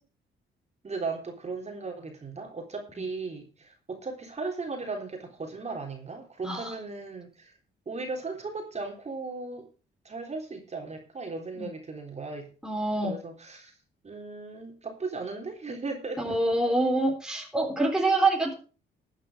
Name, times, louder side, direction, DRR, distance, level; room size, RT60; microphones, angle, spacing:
voice 1, 0.8-7.5 7.9-9.7 10.0-12.5 13.0-13.7 14.0-16.4, right 3 dB, 35° right, 2 dB, 3.7 m, -37 dB
voice 2, 6.4-6.7 11.6-11.7 12.6-13.2 16.2-18.5, right 2 dB, 5° right, 1 dB, 3.7 m, -26 dB
13.5 x 8.9 x 5.0 m, 0.35 s
cardioid pair, 90°, 20 cm